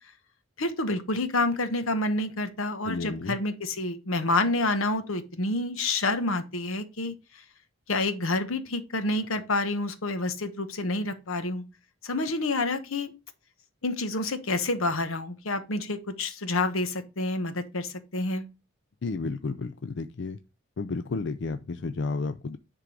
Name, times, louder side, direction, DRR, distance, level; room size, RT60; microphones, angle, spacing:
voice 1, 0.6-7.1 7.9-11.6 12.0-13.1 13.8-18.5, left 2 dB, 80° left, 1.1 m, -28 dB
voice 2, 2.8-3.4 19.0-20.4 20.8-22.6, left 3 dB, 55° left, 0.4 m, -32 dB
9.9 x 3.7 x 4.9 m
head